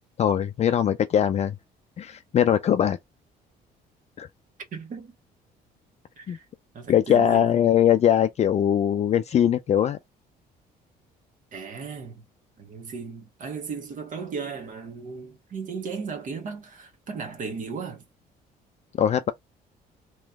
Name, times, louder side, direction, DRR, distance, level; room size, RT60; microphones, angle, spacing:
voice 1, 0.2-1.6 2.0-3.0 4.2-4.3 6.3-6.4 6.9-10.0 19.0-19.3, left 9 dB, 40° left, 0.4 m, -21 dB
voice 2, 4.7-5.1 6.2-6.4 6.7-7.6 11.5-12.2 12.6-18.0, right 5 dB, 50° right, 1.3 m, -36 dB
3.1 x 3.0 x 3.5 m
cardioid pair, 110°, 17 cm